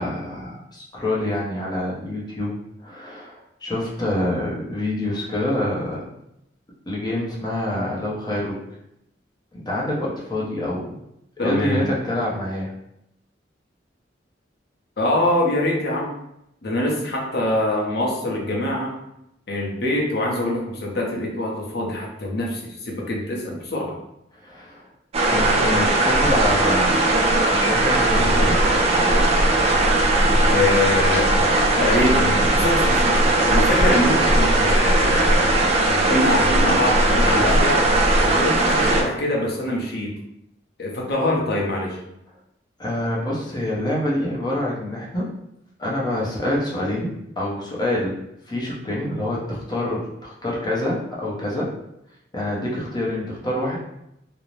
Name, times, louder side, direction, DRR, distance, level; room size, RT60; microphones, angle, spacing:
voice 1, 0.0-6.1 6.9-8.6 9.5-11.0 11.4-12.7 24.3-24.9 25.2-27.1 27.5-28.7 42.8-45.3 45.8-48.2 48.5-51.7 52.3-53.8, left 1 dB, 25° left, -4 dB, 0.6 m, -26 dB
voice 2, 11.4-11.8 15.0-16.1 16.6-19.0 19.5-23.9 30.5-31.3 31.8-37.8 38.2-40.2 40.8-42.0, left 1 dB, 60° left, -1 dB, 0.6 m, -24 dB
sound 1, 25.1-39.0, right 2 dB, 35° right, 0.3 m, -18 dB
2.5 x 2.0 x 3.0 m, 0.80 s
head